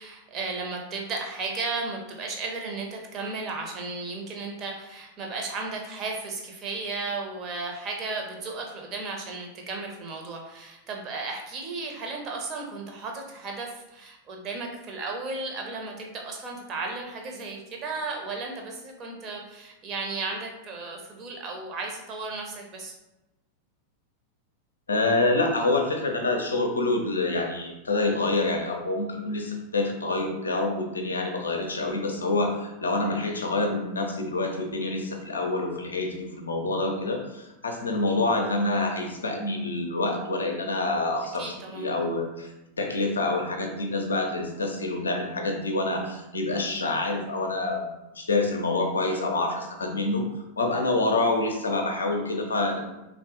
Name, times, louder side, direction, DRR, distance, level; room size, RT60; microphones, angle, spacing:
voice 1, 0.0-22.9 41.4-42.1, right 3 dB, 35° right, 1 dB, 0.6 m, -34 dB
voice 2, 24.9-42.5 42.8-47.9 48.2-50.2 50.6-52.9, left 2 dB, 75° left, 3 dB, 0.5 m, -27 dB
3.2 x 2.1 x 2.9 m, 0.96 s
figure-of-eight pair, 90°, 0 cm